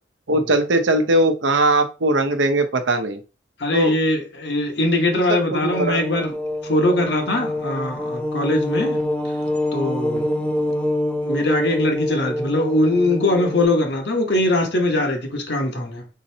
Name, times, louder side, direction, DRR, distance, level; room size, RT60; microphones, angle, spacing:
voice 1, 0.3-3.2 3.7-3.9 5.1-6.0, right 1 dB, 80° right, 0.7 m, -20 dB
voice 2, 3.6-6.3 6.6-9.0 9.7-10.2 11.2-16.1, left 1 dB, 65° left, 1.0 m, -21 dB
sound 1, 5.7-13.7, left 1 dB, 5° left, 0.4 m, -26 dB
4.2 x 3.8 x 2.8 m
head